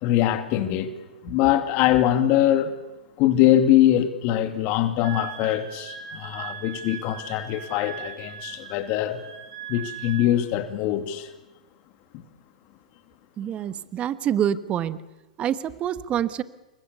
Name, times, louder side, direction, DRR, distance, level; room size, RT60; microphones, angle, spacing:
voice 1, 0.0-0.9 1.2-2.7 3.2-9.2 9.7-11.3 12.1-12.2, left 12 dB, 45° left, 2.5 m, -22 dB
Wind instrument woodwind instrument, 5.0-10.3, right 9 dB, 65° right, 6.3 m, -39 dB
voice 2, 13.4-15.0 15.4-16.4, right 10 dB, 30° right, 1.3 m, -26 dB
29.0 x 23.0 x 7.0 m
hypercardioid pair, 105°, 4 cm